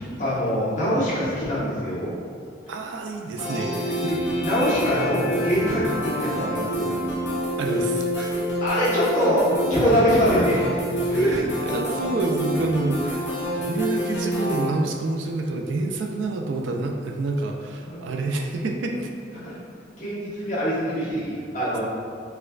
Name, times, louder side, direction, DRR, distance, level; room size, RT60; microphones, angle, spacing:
voice 1, 0.2-2.1 4.1-4.2 4.4-7.0 8.6-10.7 10.9-11.5 17.8-18.0 19.4-19.6 20.0-21.8, equal, 40° left, -10 dB, 1.1 m, -23 dB
voice 2, 2.7-4.1 7.6-8.4 11.1-19.1, right 2 dB, 80° right, 2 dB, 0.3 m, -28 dB
sound 1, 3.4-14.7, equal, 75° left, 0.8 m, -27 dB
4.2 x 2.3 x 2.3 m, 2.3 s
head